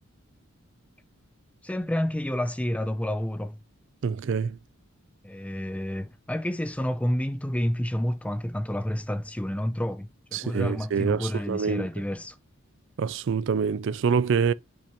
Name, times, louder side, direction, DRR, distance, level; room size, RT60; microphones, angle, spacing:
voice 1, 1.6-3.6 5.2-12.4, left 1 dB, 5° left, 0.4 m, -29 dB
voice 2, 4.0-4.6 10.3-11.9 13.0-14.5, right 6 dB, 60° right, 0.4 m, -26 dB
5.4 x 5.2 x 4.4 m
head